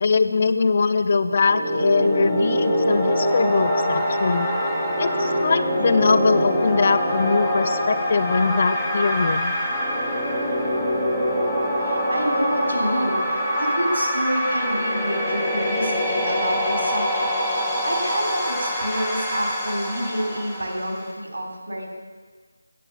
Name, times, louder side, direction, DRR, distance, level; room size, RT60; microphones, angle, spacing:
voice 1, 0.0-4.5 5.0-9.5, left 4 dB, 35° left, 12 dB, 0.4 m, -22 dB
sound 1, 1.2-21.1, equal, 5° left, 1.1 m, -24 dB
voice 2, 11.8-21.9, equal, 75° right, 0 dB, 3.2 m, -28 dB
11.0 x 6.8 x 7.1 m, 1.5 s
figure-of-eight pair, 170°, 0 cm